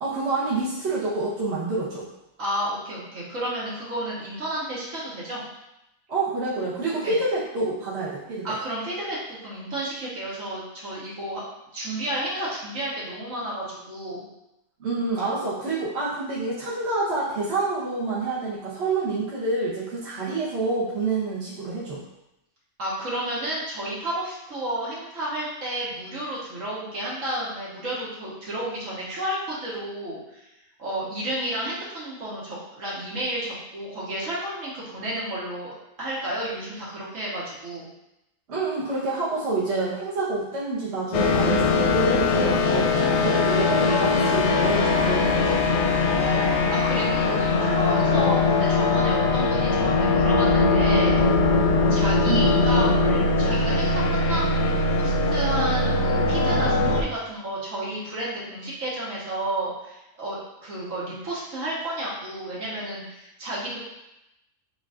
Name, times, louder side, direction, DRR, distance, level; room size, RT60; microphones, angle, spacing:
voice 1, 0.0-2.1 6.1-8.6 14.8-22.0 38.5-45.6 52.2-52.5, right 3 dB, 55° right, -8 dB, 1.4 m, -27 dB
voice 2, 2.4-5.4 7.0-7.1 8.4-11.4 11.7-14.2 22.8-30.5 30.8-37.9 46.2-51.2 51.9-63.8, right 1 dB, 70° right, -7 dB, 1.8 m, -31 dB
sound 1, 41.1-57.0, left 3 dB, 65° left, 0.8 m, -21 dB
7.7 x 2.7 x 2.5 m, 0.88 s
omnidirectional pair, 1.4 m